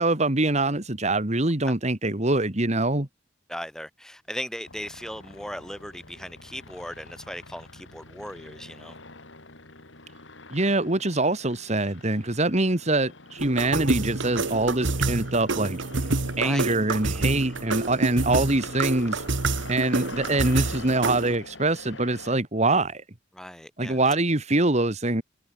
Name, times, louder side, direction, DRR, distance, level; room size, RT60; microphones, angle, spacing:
voice 1, 0.0-3.1 10.5-15.8 16.4-19.2 19.7-23.0 23.8-25.2, right 2 dB, 40° right, 2.2 m, -24 dB
voice 2, 3.5-9.0 16.4-16.7 23.3-24.0, equal, 5° left, 4.2 m, -37 dB
sound 1, 4.6-22.4, left 3 dB, 85° left, 5.2 m, -45 dB
sound 2, 13.4-21.4, right 3 dB, 85° right, 1.5 m, -28 dB
head